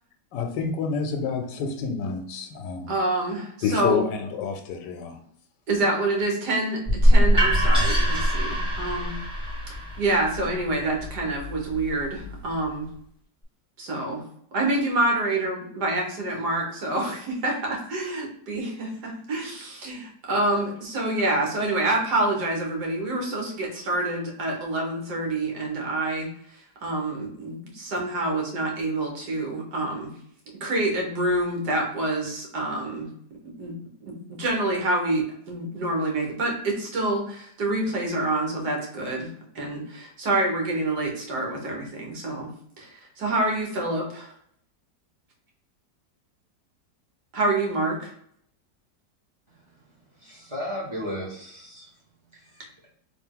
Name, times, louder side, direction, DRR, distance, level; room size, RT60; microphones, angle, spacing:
voice 1, 0.3-2.9 3.6-5.2, left 5 dB, 85° left, 5 dB, 1.2 m, -28 dB
voice 2, 2.9-4.0 5.7-9.1 9.7-12.9 13.8-14.2 14.5-30.1 30.6-33.1 33.6-33.7 34.0-39.3 39.5-42.5 42.8-44.3 47.3-48.1, right 2 dB, 70° right, 0 dB, 1.6 m, -27 dB
sound 1, 6.9-12.7, equal, 5° right, 1.4 m, -23 dB
voice 3, 49.5-52.9, equal, 20° right, -4 dB, 1.0 m, -37 dB
3.4 x 2.9 x 3.6 m, 0.68 s
omnidirectional pair, 1.9 m